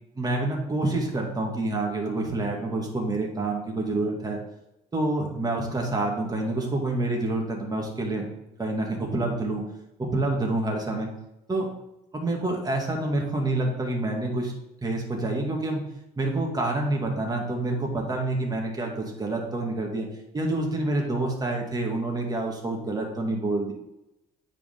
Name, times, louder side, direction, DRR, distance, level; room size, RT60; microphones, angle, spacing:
voice 1, 0.2-4.4 4.9-8.3 8.6-9.6 10.0-11.1 11.5-11.7 12.1-14.5 14.8-15.8 16.2-20.1 20.3-23.7, right 2 dB, 20° right, 0 dB, 2.0 m, -27 dB
8.7 x 4.9 x 3.8 m, 0.88 s
cardioid pair, 110°, 17 cm